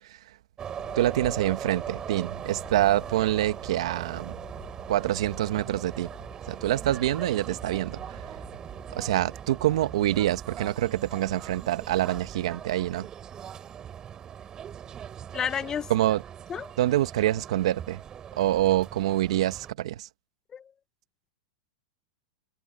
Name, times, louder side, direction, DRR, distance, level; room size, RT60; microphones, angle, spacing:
sound 1, 0.6-19.7, right 9 dB, 20° right, 7.9 m, -40 dB
sound 2, 0.8-9.3, left 22 dB, 55° left, 3.4 m, -49 dB
voice 1, 0.9-4.4 4.9-6.1 6.5-8.0 8.9-13.1 15.9-16.2 16.8-18.0 18.4-20.1, right 14 dB, 70° right, 1.5 m, -26 dB
voice 2, 15.3-15.9 16.5-16.7 20.5-20.7, left 8 dB, 20° left, 0.8 m, -31 dB
supercardioid pair, 145°, 3 cm